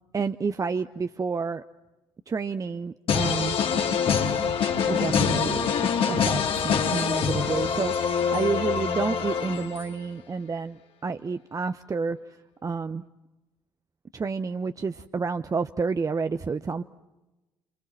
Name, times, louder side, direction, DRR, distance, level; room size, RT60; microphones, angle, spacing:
voice 1, 0.1-1.6 2.3-3.6 4.9-5.8 6.1-10.8 11.0-12.2 12.6-13.0 14.1-16.8, right 5 dB, 30° right, 10 dB, 0.9 m, -29 dB
sound 1, 3.1-10.0, left 7 dB, 55° left, 2.8 m, -25 dB
28.0 x 27.5 x 7.7 m, 1.1 s
hypercardioid pair, 55°, 11 cm